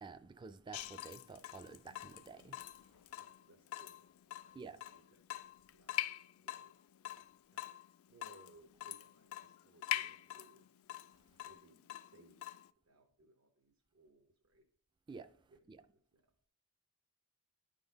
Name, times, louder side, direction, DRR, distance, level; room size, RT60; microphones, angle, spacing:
voice 1, 0.0-2.6 4.6-4.8 15.1-15.3 15.7-15.8, right 4 dB, 20° right, 0.3 m, -50 dB
Water tap faucet / Drip, 0.7-12.7, left 13 dB, 70° left, 0.3 m, -45 dB
voice 2, 3.2-4.1 4.4-5.5 5.7-6.8 7.5-7.7 8.1-10.7 11.4-12.5 12.8-14.6 15.5-16.3, right 2 dB, 70° right, 0.8 m, -65 dB
10.5 x 3.9 x 4.0 m
head